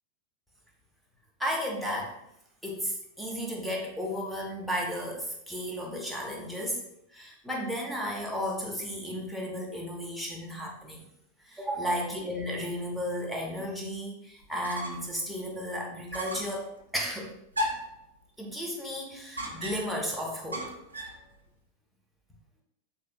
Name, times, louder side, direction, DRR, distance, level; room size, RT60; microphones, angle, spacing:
voice 1, 1.4-2.2 2.6-6.8 7.1-11.1 11.4-17.3 18.4-20.7, equal, ahead, -2 dB, 0.7 m, -34 dB
sound 1, 14.4-15.2 15.5-15.6 16.1-16.6 17.5-18.0 19.4-20.0 20.5-21.2, equal, 75° right, 0.6 m, -35 dB
3.3 x 2.7 x 2.5 m, 0.78 s
figure-of-eight pair, 90°, 0 cm